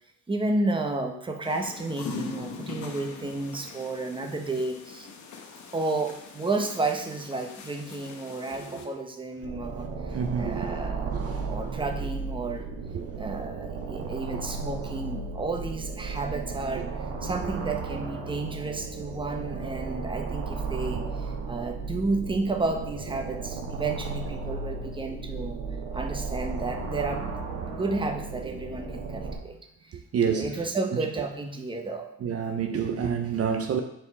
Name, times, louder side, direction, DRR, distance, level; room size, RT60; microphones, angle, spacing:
voice 1, 0.3-5.1 5.7-11.2 11.5-12.7 13.2-16.9 17.2-25.6 25.9-27.3 27.7-29.6 29.8-30.0 30.3-32.1, right 3 dB, 15° right, 3 dB, 1.0 m, -32 dB
sound 1, 1.4-8.9, left 4 dB, 75° left, 1.0 m, -42 dB
sound 2, 9.4-29.3, right 4 dB, 80° right, 1.6 m, -34 dB
voice 2, 10.1-10.7 11.0-11.5 12.9-13.0 30.1-30.6 32.2-33.8, right 7 dB, 50° right, 5 dB, 0.7 m, -28 dB
7.8 x 4.6 x 4.1 m, 0.78 s
cardioid pair, 90°, 30 cm